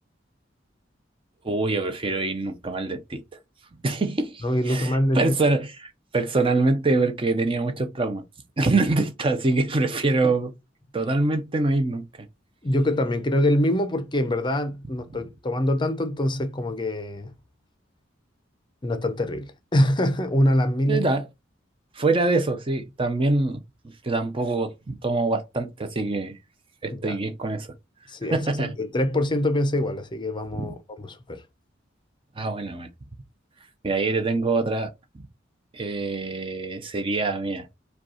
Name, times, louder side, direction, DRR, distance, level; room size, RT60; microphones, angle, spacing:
voice 1, 1.4-3.2 3.8-8.2 8.6-10.5 10.9-12.0 20.9-21.2 22.0-23.6 24.0-26.3 26.8-27.7 28.3-28.8 30.5-30.7 32.4-32.9 33.8-34.9 35.7-37.7, right 3 dB, 30° right, 0.5 m, -24 dB
voice 2, 4.4-5.3 12.6-17.3 18.8-21.1 26.9-27.2 28.1-31.4, left 1 dB, 25° left, 0.6 m, -24 dB
5.1 x 2.3 x 4.2 m
head